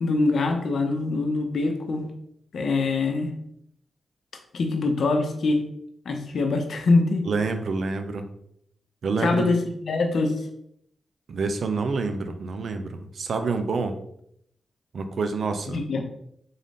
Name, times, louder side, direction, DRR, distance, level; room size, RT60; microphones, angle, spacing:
voice 1, 0.0-2.1 2.5-3.3 4.5-5.6 6.1-7.3 9.2-10.4 15.7-16.0, left 3 dB, 70° left, 4 dB, 0.6 m, -24 dB
voice 2, 7.2-8.3 9.0-9.5 11.3-13.9 14.9-15.8, right 4 dB, 70° right, 7 dB, 0.4 m, -27 dB
3.8 x 2.6 x 3.5 m, 0.73 s
cardioid pair, 65°, 0 cm